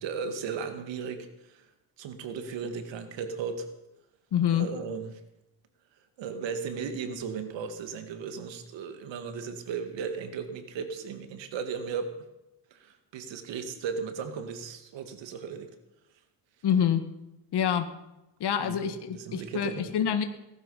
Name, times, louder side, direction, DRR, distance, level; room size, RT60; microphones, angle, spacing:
voice 1, 0.0-1.6 2.0-3.7 4.5-5.1 6.2-12.1 12.7-15.7 18.6-20.0, right 6 dB, 85° right, 7 dB, 2.2 m, -36 dB
voice 2, 4.3-4.7 16.6-17.1 17.5-17.9 18.4-20.2, left 9 dB, 65° left, 9 dB, 1.7 m, -26 dB
18.5 x 12.5 x 5.7 m, 0.91 s
cardioid pair, 90°, 43 cm